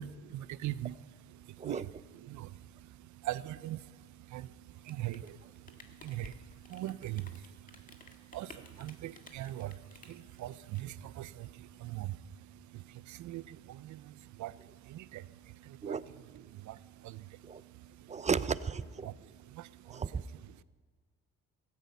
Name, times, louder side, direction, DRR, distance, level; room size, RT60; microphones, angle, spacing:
voice 1, 0.0-18.3 19.0-20.6, right 14 dB, 70° right, 18 dB, 0.6 m, -43 dB
Rain, 4.7-11.5, left 3 dB, 25° left, 1.7 m, -55 dB
voice 2, 18.1-19.1 19.9-20.2, right 5 dB, 25° right, 17 dB, 0.5 m, -34 dB
16.5 x 14.5 x 5.5 m, 1.5 s
cardioid pair, 90°, 30 cm